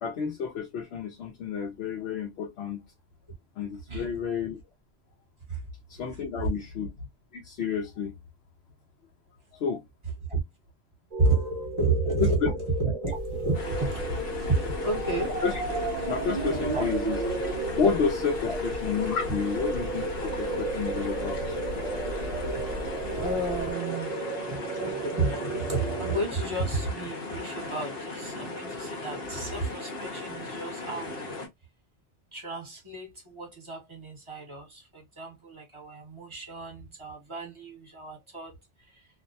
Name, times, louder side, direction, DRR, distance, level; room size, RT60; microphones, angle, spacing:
voice 1, 0.0-2.8 3.6-4.6 5.9-6.9 7.3-8.1 9.6-9.8 12.2-12.5 15.4-15.5 16.1-17.2 17.8-21.4, left 6 dB, 85° left, 0.9 m, -30 dB
voice 2, 6.1-6.5 10.3-10.4 11.2-14.1 14.5-15.3 16.1-16.2 16.7-16.9 18.4-18.6 21.0-21.1 23.0-24.1 24.4-31.4 32.3-39.1, right 3 dB, 30° right, 1.1 m, -31 dB
sound 1, 11.1-26.2, right 2 dB, 50° right, 0.5 m, -34 dB
sound 2, 13.1-23.7, equal, 75° right, 0.8 m, -39 dB
sound 3, 13.5-31.5, left 3 dB, 65° left, 1.1 m, -37 dB
2.5 x 2.1 x 2.6 m
omnidirectional pair, 1.0 m